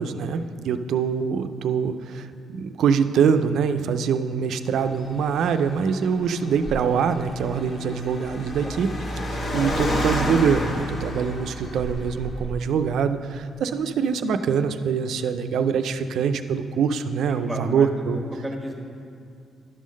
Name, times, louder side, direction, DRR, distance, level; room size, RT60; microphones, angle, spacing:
voice 1, 0.0-8.9 9.3-18.2, right 6 dB, 75° right, 9 dB, 0.4 m, -24 dB
Car, 4.8-12.7, left 1 dB, 45° left, 0.9 m, -30 dB
voice 2, 17.3-18.7, right 1 dB, 5° right, 0 dB, 1.2 m, -34 dB
11.0 x 3.8 x 6.2 m, 2.4 s
cardioid pair, 90°, 0 cm